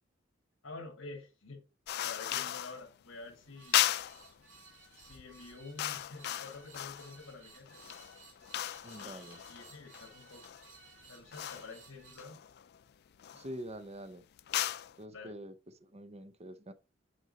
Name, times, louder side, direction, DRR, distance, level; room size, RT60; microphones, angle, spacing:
voice 1, 0.6-1.6 2.0-3.8 5.0-7.8 9.0-10.4 11.1-12.4 15.1-15.3, left 3 dB, 70° left, 1.8 m, -48 dB
sound 1, 1.9-2.8 3.7-4.3 5.0-5.2 5.5-7.2 7.7-10.7 11.3-11.8 12.2-12.8 13.2-13.5 14.4-15.0, left 13 dB, 55° left, 0.3 m, -36 dB
sound 2, 3.5-12.2, right 4 dB, 65° right, 2.5 m, -57 dB
voice 2, 8.8-9.4 13.3-14.3 15.0-16.7, right 1 dB, 30° right, 0.7 m, -45 dB
6.3 x 5.4 x 4.0 m
head